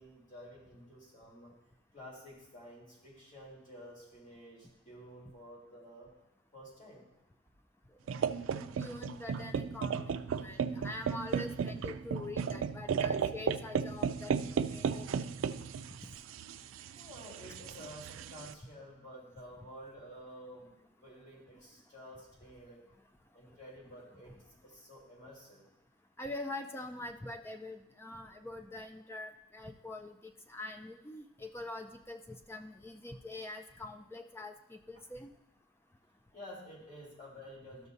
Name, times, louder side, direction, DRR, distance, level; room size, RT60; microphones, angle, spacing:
voice 1, 0.0-1.5 1.9-6.1 6.5-7.1 16.9-22.8 23.3-24.3 24.6-25.6 36.3-37.9, equal, 40° left, -7 dB, 3.5 m, -51 dB
sound 1, 8.1-18.5, right 6 dB, 90° right, 0.4 m, -35 dB
voice 2, 8.4-15.3 24.3-24.4 26.2-35.3, left 2 dB, 10° left, 5 dB, 0.4 m, -44 dB
14.0 x 6.0 x 2.7 m, 0.88 s
head